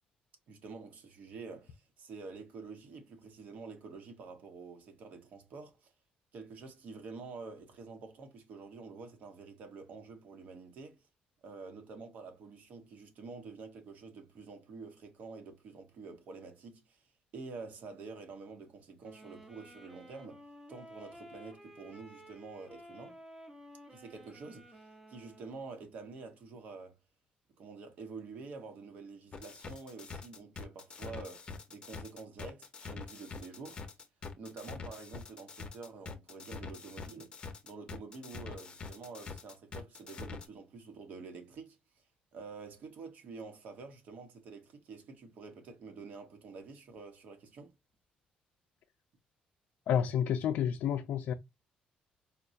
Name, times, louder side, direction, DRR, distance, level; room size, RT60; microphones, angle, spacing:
voice 1, 0.5-5.9 6.3-11.0 11.4-17.1 17.3-23.2 23.9-27.0 27.6-33.8 34.4-37.3 37.6-42.0 42.3-47.7, right 4 dB, 60° right, 1.0 m, -48 dB
sound 1, 19.0-25.6, equal, 10° right, 0.8 m, -53 dB
sound 2, 29.3-40.5, left 4 dB, 30° left, 0.7 m, -45 dB
voice 2, 49.9-51.3, left 9 dB, 70° left, 0.4 m, -30 dB
4.3 x 2.2 x 2.5 m
cardioid pair, 135°, 3 cm